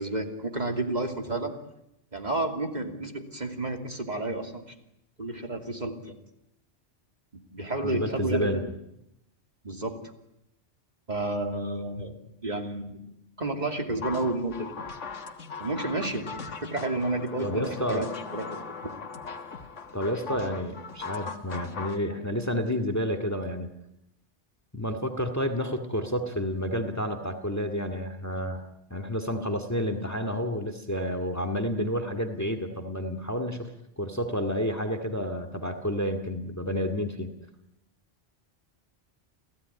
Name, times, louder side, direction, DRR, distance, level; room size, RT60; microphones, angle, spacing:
voice 1, 0.0-1.5 2.1-4.6 5.2-6.2 7.3-8.6 9.6-10.0 11.1-13.0 13.4-14.7 15.6-16.3 16.6-18.1 18.3-18.9, right 2 dB, 35° right, 4 dB, 2.8 m, -31 dB
voice 2, 7.8-8.6 17.4-18.1 19.9-23.7 24.7-33.7 34.0-37.3, equal, 15° left, 7 dB, 2.2 m, -30 dB
sound 1, 14.0-22.0, left 5 dB, 85° left, 1.9 m, -39 dB
29.5 x 17.0 x 9.7 m, 0.83 s
omnidirectional pair, 1.2 m